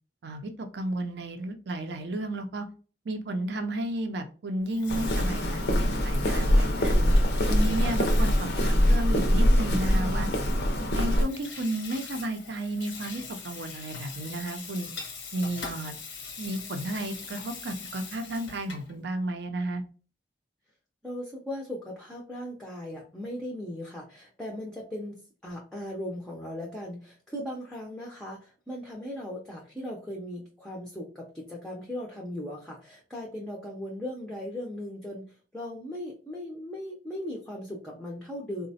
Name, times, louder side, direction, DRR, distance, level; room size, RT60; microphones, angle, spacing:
voice 1, 0.2-2.7 3.1-6.9 7.5-10.3 10.9-14.9 15.3-16.0 16.4-19.8, right 1 dB, 70° right, 7 dB, 0.5 m, -33 dB
Water tap faucet / Sink (filling or washing), 4.6-18.9, left 5 dB, 90° left, 0.9 m, -43 dB
Walk footsteps, 4.9-11.2, equal, 65° left, 0.5 m, -23 dB
voice 2, 6.6-7.3 21.0-38.7, left 1 dB, 5° left, -2 dB, 0.5 m, -38 dB
3.9 x 2.1 x 2.7 m, 0.38 s
head